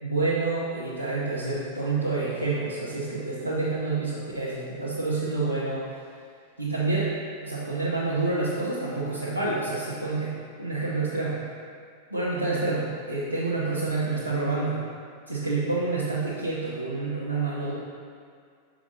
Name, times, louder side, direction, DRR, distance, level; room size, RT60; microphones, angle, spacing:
voice 1, 0.0-5.9 6.6-7.1 7.4-10.3 10.6-11.4 12.1-14.8 15.3-17.7, right 3 dB, 85° right, -9 dB, 0.9 m, -28 dB
6.0 x 4.9 x 4.1 m, 2.2 s
figure-of-eight pair, 90°, 0 cm